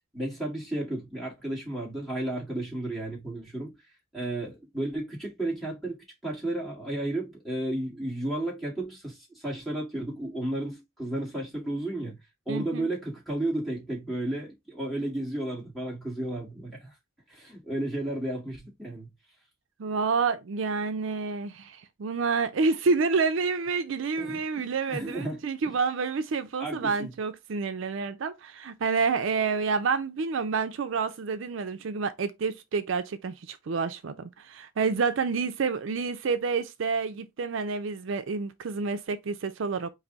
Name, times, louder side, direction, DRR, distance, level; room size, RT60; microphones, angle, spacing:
voice 1, 0.1-3.7 4.1-6.0 6.2-12.2 12.5-16.9 17.3-19.1 24.2-25.4 26.6-27.1, right 1 dB, ahead, 2.0 m, -33 dB
voice 2, 12.5-12.9 19.8-39.9, right 4 dB, 70° right, 0.4 m, -28 dB
4.7 x 2.6 x 3.9 m
head